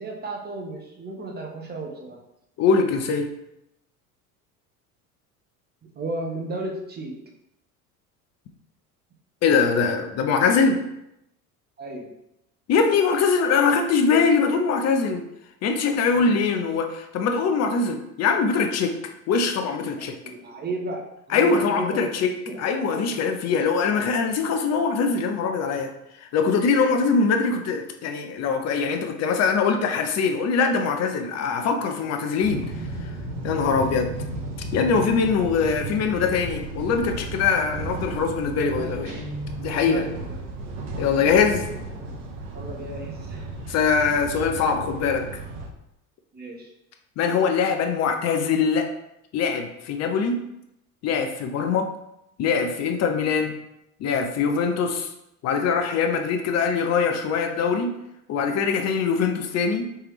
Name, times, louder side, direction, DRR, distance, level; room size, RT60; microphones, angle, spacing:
voice 1, 0.0-2.2 5.9-7.2 11.8-12.1 16.1-16.4 20.0-21.0 21.3-22.1 22.5-23.0 23.5-23.7 32.3-32.4 38.6-39.0 39.7-40.1 42.5-43.5 46.3-46.7, right 2 dB, 20° right, 0 dB, 0.9 m, -34 dB
voice 2, 2.6-3.3 9.4-10.8 12.7-15.2 15.6-18.9 19.3-20.2 21.3-22.3 22.6-25.9 26.3-32.7 33.4-34.2 34.7-39.1 39.6-40.0 41.0-41.7 43.7-45.3 47.2-48.9 49.3-50.4 51.0-51.9 52.4-53.5 54.0-55.1 55.4-57.9 58.3-59.9, left 5 dB, 35° left, 5 dB, 0.6 m, -22 dB
sound 1, 32.4-45.7, right 2 dB, 60° right, 0.8 m, -34 dB
Guitar, 39.0-39.8, right 1 dB, 85° right, 1.1 m, -36 dB
3.4 x 3.2 x 3.0 m, 0.84 s
hypercardioid pair, 70°, 45 cm